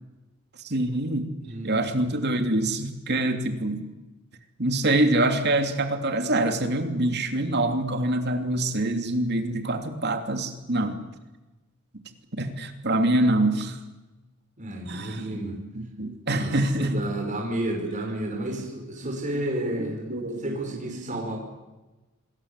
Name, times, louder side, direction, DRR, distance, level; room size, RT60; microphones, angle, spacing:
voice 1, 0.6-1.3 1.6-3.9 4.6-11.0 12.3-13.8 14.9-15.4 15.7-17.0 19.0-19.1 19.6-20.5 21.1-21.3, right 1 dB, 50° right, 6 dB, 2.9 m, -25 dB
voice 2, 1.4-2.0 14.6-15.6 16.3-21.4, right 1 dB, 35° right, 0 dB, 5.6 m, -31 dB
27.5 x 21.5 x 8.3 m, 1.1 s
head